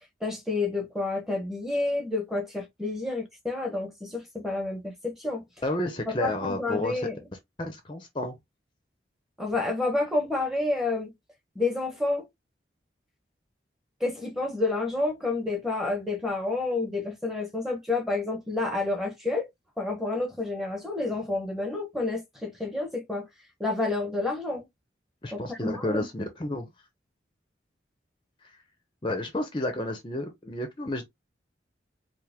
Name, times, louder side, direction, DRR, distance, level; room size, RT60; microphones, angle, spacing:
voice 1, 0.2-5.4 6.1-7.2 9.4-11.1 11.5-12.3 14.0-19.5 19.8-23.3 23.6-24.7 25.3-26.1, left 2 dB, ahead, 0.9 m, -29 dB
voice 2, 5.6-7.1 7.6-8.4 25.2-26.7 28.4-28.5 29.0-31.1, left 1 dB, 25° left, 0.6 m, -31 dB
4.7 x 2.0 x 3.5 m
head